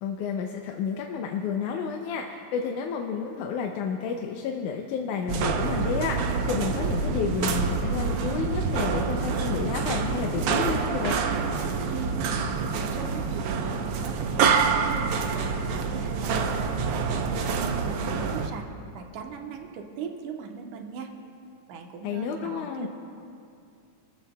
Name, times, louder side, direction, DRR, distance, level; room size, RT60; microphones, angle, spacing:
voice 1, 0.0-11.2 22.0-22.9, left 6 dB, 85° left, 2 dB, 2.2 m, -31 dB
sound 1, 5.3-18.5, right 5 dB, 75° right, 1.3 m, -27 dB
voice 2, 11.8-17.4 17.8-18.7 18.9-21.1 21.7-22.9, right 5 dB, 90° right, 3 dB, 2.5 m, -39 dB
29.5 x 14.0 x 2.3 m, 2.5 s
omnidirectional pair, 3.5 m